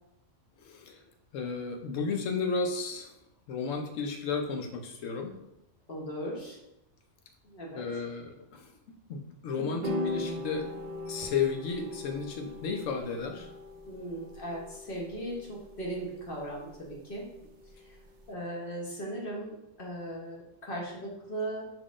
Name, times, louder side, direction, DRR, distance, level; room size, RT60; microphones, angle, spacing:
voice 1, 0.6-1.0 1.3-3.1 3.5-5.4 7.7-8.7 9.1-10.7 11.1-13.5, left 5 dB, 90° left, 4 dB, 1.0 m, -33 dB
voice 2, 5.9-6.6 7.4-7.8 9.6-9.8 13.9-17.2 18.3-21.6, right 1 dB, 50° left, -3 dB, 1.0 m, -38 dB
sound 1, 9.8-18.3, left 2 dB, 60° right, 0.5 m, -40 dB
5.0 x 3.7 x 2.4 m, 0.87 s
omnidirectional pair, 1.3 m